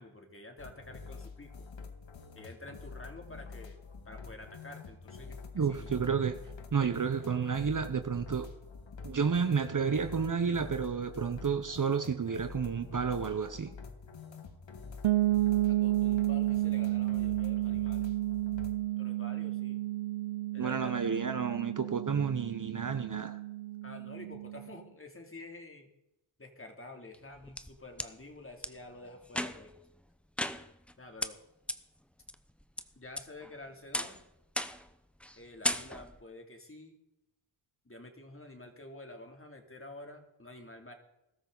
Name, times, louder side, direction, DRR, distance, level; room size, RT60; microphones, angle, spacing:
voice 1, 0.0-1.7 2.3-3.8 4.0-5.9 15.6-18.1 19.0-19.8 20.5-21.3 23.8-25.9 26.4-29.7 31.0-31.4 33.0-34.2 35.4-37.0 37.8-40.9, left 2 dB, 25° left, 3 dB, 3.1 m, -49 dB
sound 1, 0.6-18.7, left 4 dB, 60° left, 2.0 m, -47 dB
voice 2, 5.5-6.4 6.7-8.5 9.0-13.7 20.6-23.4, right 6 dB, 40° right, 9 dB, 1.1 m, -31 dB
sound 2, 15.0-24.7, right 16 dB, 80° right, 0.7 m, -31 dB
sound 3, 27.1-28.1 28.6-28.7 29.3-29.8 30.4-30.9 31.2-31.3 31.7-31.8 32.3-32.8 33.2-33.5 33.9-34.2 34.6-34.9 35.2-35.4 35.6-36.2, equal, ahead, 0.8 m, -35 dB
20.5 x 13.0 x 4.1 m, 0.90 s
cardioid pair, 70°, 50 cm